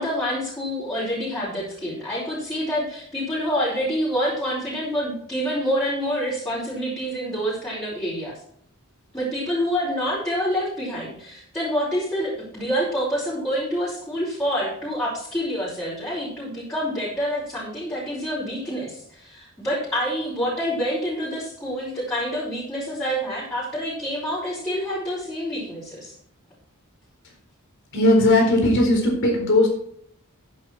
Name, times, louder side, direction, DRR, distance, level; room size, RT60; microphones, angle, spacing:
voice 1, 0.0-8.3 9.1-26.1, equal, 15° left, -9 dB, 5.0 m, -27 dB
voice 2, 27.9-29.7, left 1 dB, 60° left, 1 dB, 4.1 m, -18 dB
10.0 x 9.9 x 4.6 m, 0.67 s
head